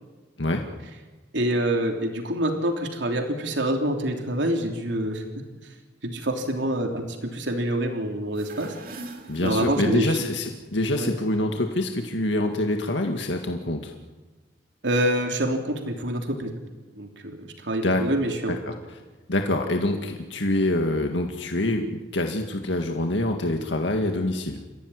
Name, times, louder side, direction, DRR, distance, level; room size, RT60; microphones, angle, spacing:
voice 1, 1.3-5.2 6.0-8.7 9.4-10.2 10.9-11.1 14.8-16.6 17.0-18.6, right 1 dB, 80° right, 3 dB, 3.3 m, -26 dB
sound 1, 8.3-10.3, right 2 dB, 50° right, 3.0 m, -43 dB
voice 2, 9.3-13.9 17.8-18.0 18.5-18.7 19.3-24.6, left 1 dB, 80° left, 4 dB, 2.0 m, -25 dB
29.5 x 16.0 x 9.9 m, 1.3 s
head